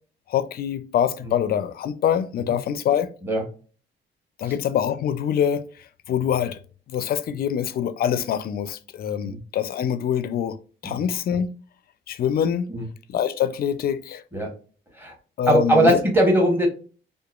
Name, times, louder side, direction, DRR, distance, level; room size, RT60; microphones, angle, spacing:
voice 1, 0.3-3.1 4.4-5.7 6.1-6.6 6.9-10.6 10.8-11.5 12.1-12.7 13.1-14.2 15.4-16.0, left 9 dB, 50° left, 0.4 m, -24 dB
voice 2, 15.5-16.7, right 1 dB, 10° right, 1.2 m, -20 dB
2.9 x 2.2 x 2.3 m
cardioid pair, 90°, 20 cm